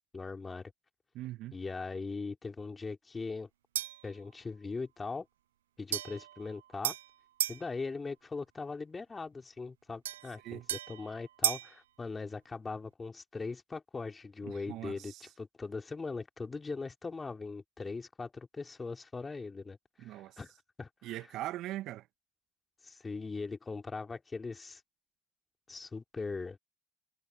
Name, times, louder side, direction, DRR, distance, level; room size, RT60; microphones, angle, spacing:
voice 1, 0.1-0.7 1.5-3.5 4.0-5.3 5.8-7.0 7.5-20.5 20.8-21.2 22.8-24.8 25.7-26.6, left 4 dB, 30° left, 4.0 m, -40 dB
voice 2, 1.1-1.6 10.4-10.7 14.4-15.3 20.0-20.4 21.0-22.1, right 15 dB, 65° right, 1.8 m, -41 dB
sound 1, 3.7-4.1 5.9-7.6 10.0-11.8, right 12 dB, 80° right, 0.8 m, -35 dB
figure-of-eight pair, 45°, 0 cm